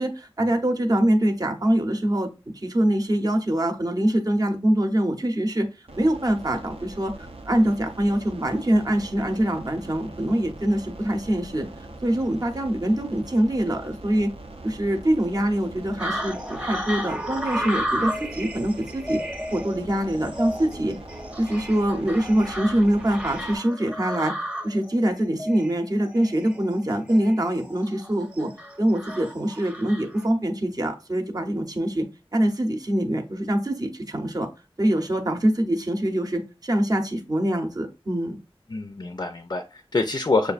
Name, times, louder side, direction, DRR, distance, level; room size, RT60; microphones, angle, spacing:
voice 1, 0.0-2.3 2.5-5.7 6.0-7.1 7.4-11.7 12.0-14.3 14.6-19.2 19.5-21.0 21.4-28.5 28.8-32.1 32.3-34.5 34.8-38.4, right 1 dB, 40° right, 0.8 m, -24 dB
sound 1, 5.9-23.6, right 1 dB, 75° right, 0.6 m, -42 dB
sound 2, 16.0-30.2, equal, 10° right, 0.8 m, -33 dB
voice 2, 38.7-40.5, left 3 dB, 45° left, 0.4 m, -26 dB
6.5 x 2.5 x 2.4 m
wide cardioid pair, 65°, 10 cm